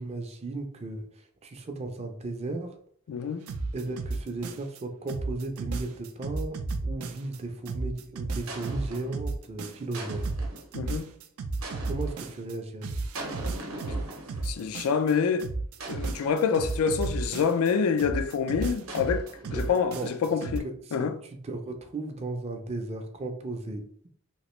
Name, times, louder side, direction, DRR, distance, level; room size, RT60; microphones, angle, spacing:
voice 1, 0.0-2.7 3.7-10.3 11.9-13.0 19.4-20.1 20.4-24.1, right 2 dB, 30° right, 0.4 m, -36 dB
voice 2, 3.1-3.4 10.7-11.1 13.9-14.0 14.4-15.5 15.9-19.2 19.5-20.7 20.9-21.1, left 6 dB, 90° left, 0.3 m, -26 dB
sound 1, 3.5-4.8 5.1-7.4 7.7-12.5 12.8-15.1 15.4-17.7 18.0-20.6, right 3 dB, 90° right, 0.4 m, -33 dB
sound 2, 7.2-7.5 8.5-9.2 9.9-10.8 11.6-12.4 13.1-14.8 15.8-17.0 18.9-20.1, right 2 dB, 70° right, 0.7 m, -42 dB
3.0 x 2.4 x 3.0 m
head